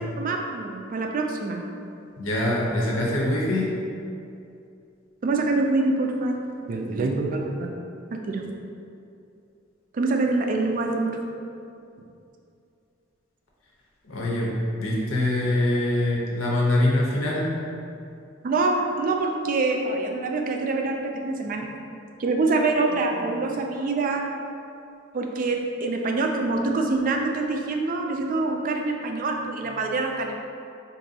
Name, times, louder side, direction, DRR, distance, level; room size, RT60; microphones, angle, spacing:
voice 1, 0.2-1.6 5.2-6.4 6.7-7.7 8.1-8.5 9.9-11.2 18.4-21.7 22.2-24.4 25.1-30.3, right 3 dB, 45° right, 2 dB, 0.3 m, -25 dB
voice 2, 2.2-3.7 14.1-14.5 14.8-17.5, left 1 dB, 90° left, -4 dB, 0.7 m, -24 dB
4.0 x 2.6 x 2.7 m, 2.6 s
head